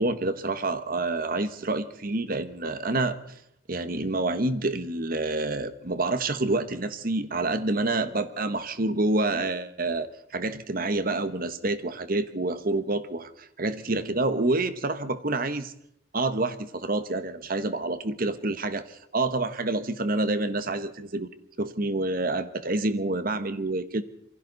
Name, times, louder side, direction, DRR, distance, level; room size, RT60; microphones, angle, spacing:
voice 1, 0.0-3.2 3.7-15.7 16.1-21.3 21.6-24.0, right 2 dB, 50° right, 10 dB, 1.3 m, -28 dB
27.5 x 24.0 x 4.1 m, 0.72 s
head